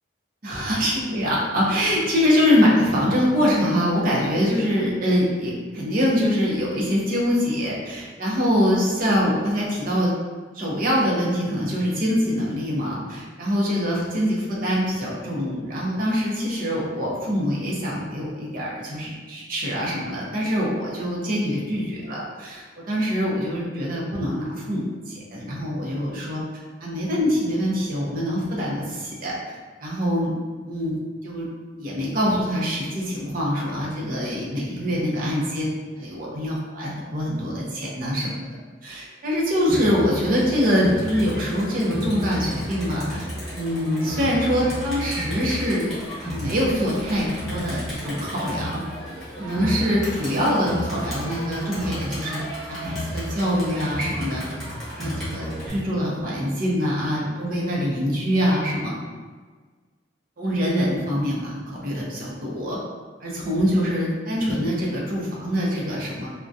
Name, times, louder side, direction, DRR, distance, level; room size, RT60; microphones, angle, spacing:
voice 1, 0.4-10.1 10.5-26.4 26.8-29.3 29.8-30.3 30.7-31.5 31.8-35.7 36.0-43.2 43.5-45.9 46.2-48.8 49.4-52.4 52.7-54.4 55.0-58.9 60.4-62.8 63.2-66.3, equal, 45° right, -4 dB, 0.6 m, -24 dB
Crowd, 39.7-55.7, equal, ahead, 0.8 m, -32 dB
2.3 x 2.2 x 2.6 m, 1.4 s
head